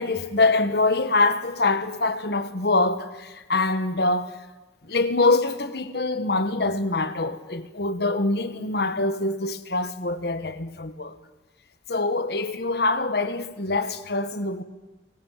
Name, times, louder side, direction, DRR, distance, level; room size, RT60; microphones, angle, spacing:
voice 1, 0.0-4.4 4.8-11.1 11.9-14.6, left 3 dB, 60° left, 1.4 m, -24 dB
24.5 x 20.0 x 7.5 m
head